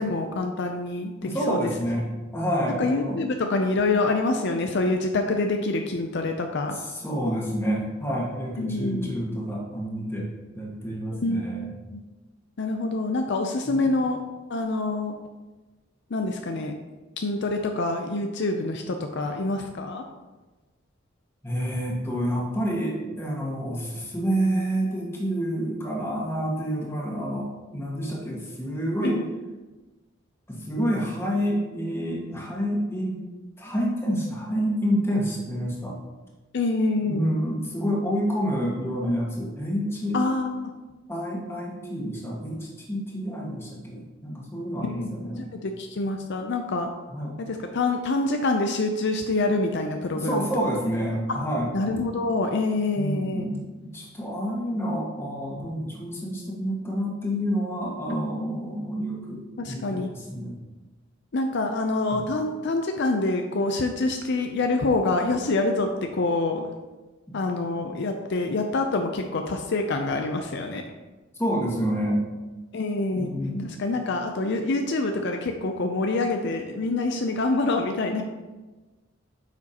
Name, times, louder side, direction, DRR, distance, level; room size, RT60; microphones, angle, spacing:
voice 1, 0.0-1.7 2.8-6.8 8.6-9.2 11.1-11.4 11.9-12.0 12.6-14.2 14.5-15.2 16.1-16.7 17.2-20.0 29.0-29.3 36.5-37.3 40.1-40.7 44.8-45.1 45.4-46.9 47.4-50.5 51.7-53.5 59.6-60.1 61.3-66.7 67.3-70.8 72.7-73.3 73.6-78.2, left 2 dB, 60° left, 4 dB, 0.5 m, -26 dB
voice 2, 1.2-3.2 6.6-10.3 10.5-11.7 13.6-13.8 21.4-27.5 27.7-29.2 30.5-33.2 33.6-36.0 37.0-40.2 41.1-45.5 47.1-47.3 50.1-51.7 53.0-59.4 59.7-60.6 71.4-72.2 73.1-73.7, equal, 15° left, -4 dB, 1.7 m, -28 dB
8.8 x 6.1 x 2.9 m, 1.2 s
head